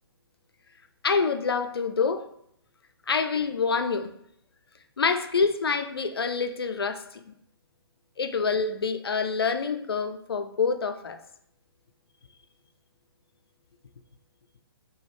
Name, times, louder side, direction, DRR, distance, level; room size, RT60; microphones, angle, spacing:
voice 1, 1.0-2.3 3.1-4.1 5.0-7.0 8.2-11.2, left 5 dB, 75° left, 9 dB, 0.4 m, -26 dB
3.8 x 2.7 x 3.1 m, 0.73 s
figure-of-eight pair, 125°, 13 cm